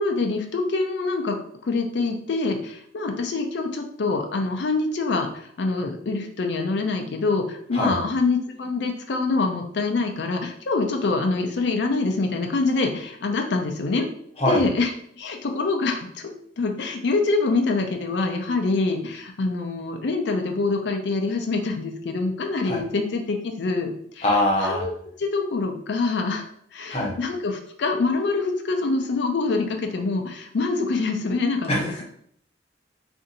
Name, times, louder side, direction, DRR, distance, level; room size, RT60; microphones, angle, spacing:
voice 1, 0.0-1.4 1.6-14.1 14.5-14.9 15.2-16.3 16.6-24.3 24.6-26.4 26.7-32.0, left 3 dB, 70° left, 4 dB, 0.4 m, -25 dB
voice 2, 24.2-24.9 26.9-27.1 31.7-32.0, left 1 dB, 35° left, -1 dB, 0.8 m, -23 dB
2.6 x 2.6 x 3.9 m, 0.66 s
head